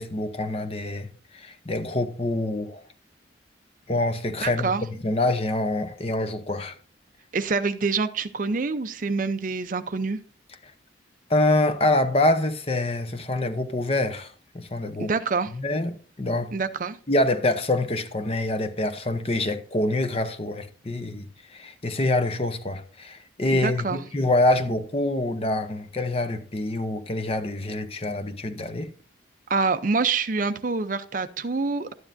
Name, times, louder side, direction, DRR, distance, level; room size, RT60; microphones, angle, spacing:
voice 1, 0.0-2.8 3.9-4.7 5.0-6.8 11.3-15.1 15.5-16.5 17.1-28.9, left 2 dB, 30° left, 0.8 m, -26 dB
voice 2, 4.4-4.8 7.3-10.2 15.0-15.5 16.5-17.0 23.5-24.0 29.5-31.9, right 4 dB, 45° right, 0.5 m, -26 dB
12.5 x 9.6 x 2.6 m
head